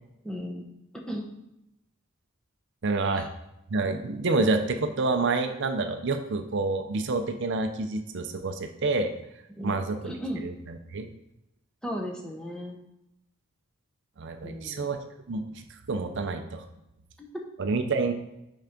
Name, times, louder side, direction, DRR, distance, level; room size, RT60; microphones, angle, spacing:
voice 1, 0.2-0.6 1.1-1.3 3.1-3.3 9.5-10.4 11.8-12.8 14.4-14.9 17.2-17.3, equal, 5° left, -1 dB, 0.9 m, -35 dB
voice 2, 2.8-3.3 3.7-9.1 9.6-10.1 10.4-11.1 14.2-15.0 15.3-16.6 17.6-18.1, right 3 dB, 60° right, 7 dB, 0.6 m, -28 dB
5.7 x 4.6 x 5.2 m, 0.86 s
head